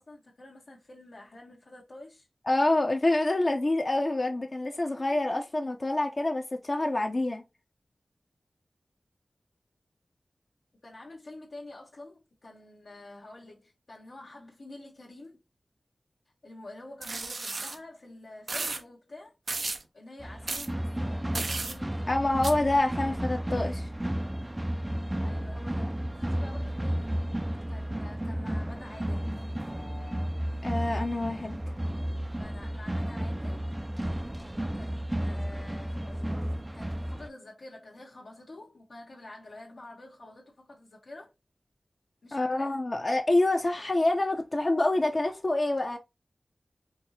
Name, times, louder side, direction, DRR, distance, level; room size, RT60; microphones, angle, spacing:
voice 1, 0.0-2.3 10.8-15.4 16.4-19.3 19.9-22.3 25.2-27.1 27.7-29.3 32.4-33.8 34.5-41.3 42.2-42.8, left 2 dB, 80° left, 1.1 m, -48 dB
voice 2, 2.5-7.4 22.1-23.9 29.7-30.3 30.6-31.6 42.3-46.0, left 2 dB, 45° left, 0.7 m, -27 dB
sound 1, 17.0-17.8 18.5-18.8 19.5-19.8 20.5-20.7 21.3-21.8 22.4-22.5, right 3 dB, 75° right, 0.6 m, -33 dB
sound 2, 20.2-37.3, right 1 dB, 20° right, 0.3 m, -33 dB
4.5 x 2.8 x 2.7 m
wide cardioid pair, 60°, 0 cm